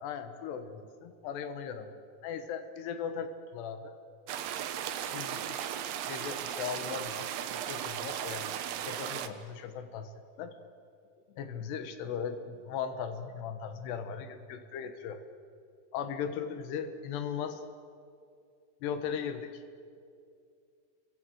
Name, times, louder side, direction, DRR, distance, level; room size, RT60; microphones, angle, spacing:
voice 1, 0.0-3.9 5.1-5.7 6.1-7.3 7.7-8.5 8.8-10.1 10.4-10.6 11.4-15.2 15.9-17.6 18.8-19.6, left 7 dB, 90° left, 8 dB, 3.5 m, -38 dB
sound 1, 4.3-9.3, right 10 dB, 75° right, 3.0 m, -36 dB
29.0 x 24.0 x 7.9 m, 2.4 s
omnidirectional pair, 4.7 m